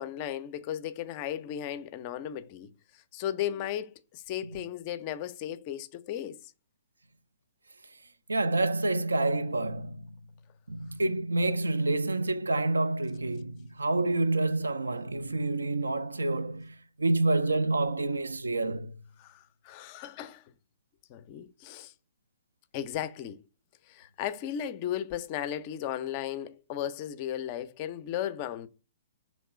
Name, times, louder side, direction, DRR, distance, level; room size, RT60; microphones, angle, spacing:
voice 1, 0.0-2.7 3.1-6.4 19.2-20.4 21.1-21.9 22.7-23.4 23.9-28.7, left 10 dB, 35° left, 0.4 m, -35 dB
voice 2, 8.3-10.0 10.7-18.9, right 2 dB, 75° right, 0.3 m, -28 dB
3.6 x 3.1 x 4.1 m
figure-of-eight pair, 120°, 0 cm